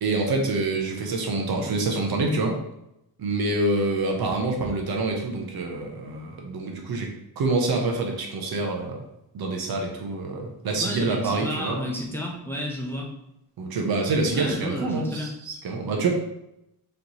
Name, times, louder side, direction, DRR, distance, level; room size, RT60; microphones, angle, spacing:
voice 1, 0.0-2.6 3.2-7.1 7.4-9.0 9.3-11.8 13.6-16.1, right 2 dB, 70° right, 1 dB, 0.9 m, -26 dB
voice 2, 10.8-13.1 14.3-15.3, equal, 5° left, -2 dB, 0.5 m, -31 dB
4.0 x 3.3 x 2.9 m, 0.83 s
wide cardioid pair, 145°, 38 cm